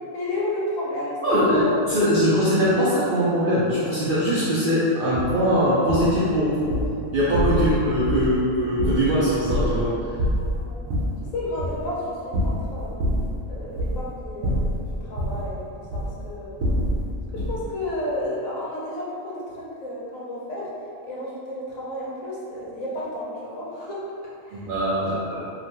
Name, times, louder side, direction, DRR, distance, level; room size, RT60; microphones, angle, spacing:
voice 1, 0.1-1.8 10.6-10.9 11.3-12.2 12.4-13.0 13.5-16.6 17.3-20.7 21.0-24.0 24.4-24.7 25.3-25.5, left 1 dB, 75° left, -6 dB, 1.1 m, -32 dB
voice 2, 1.2-1.6 1.9-6.7 7.1-10.0 24.5-25.2, equal, 70° right, -10 dB, 0.5 m, -21 dB
sound 1, 5.1-5.3 5.9-6.2 6.6-6.9 7.3-7.8 8.0-8.4 8.8-9.9 10.2-11.2 11.6-11.9 12.3-13.4 13.7-14.1 14.4-15.5 15.9-16.2 16.6-17.0 17.4-17.6, equal, 85° right, 1.0 m, -25 dB
2.9 x 2.1 x 2.8 m, 2.6 s
omnidirectional pair, 1.4 m